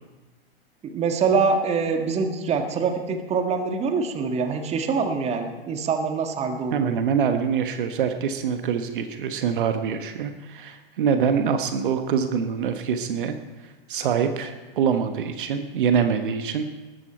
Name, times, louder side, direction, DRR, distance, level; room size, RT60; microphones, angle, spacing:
voice 1, 0.8-7.0, right 5 dB, 20° right, 6 dB, 1.6 m, -24 dB
voice 2, 6.7-13.3 13.6-16.7, right 7 dB, 55° right, 8 dB, 1.3 m, -25 dB
20.0 x 13.5 x 4.4 m, 1.2 s
figure-of-eight pair, 105°, 31 cm